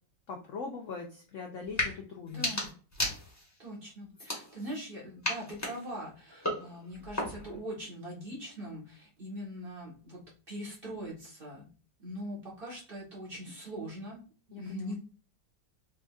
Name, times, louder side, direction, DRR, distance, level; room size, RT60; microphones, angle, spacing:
voice 1, 0.3-2.5 14.5-14.9, left 4 dB, 70° left, 1 dB, 0.7 m, -41 dB
sound 1, 1.6-1.9 2.3-3.6 4.1-4.8 5.2-7.6, left 1 dB, 10° left, 0.9 m, -35 dB
voice 2, 2.3-2.7 3.6-11.7 12.0-14.2 14.5-14.9, equal, 35° right, -5 dB, 1.5 m, -42 dB
3.7 x 3.4 x 2.3 m, 0.39 s
omnidirectional pair, 1.9 m